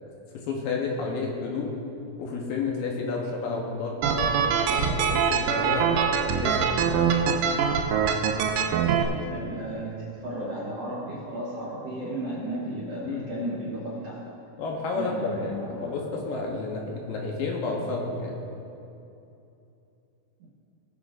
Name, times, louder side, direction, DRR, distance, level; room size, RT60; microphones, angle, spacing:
voice 1, 0.3-1.7 2.2-6.0 6.4-6.8 13.1-13.3 14.6-18.4, left 4 dB, 75° left, -1 dB, 2.6 m, -31 dB
sound 1, 4.0-9.0, right 7 dB, 85° right, 2.0 m, -24 dB
voice 2, 8.7-14.3 14.9-15.9 20.4-20.5, right 1 dB, 60° right, -6 dB, 1.7 m, -34 dB
19.0 x 8.2 x 2.6 m, 2.7 s
omnidirectional pair, 4.5 m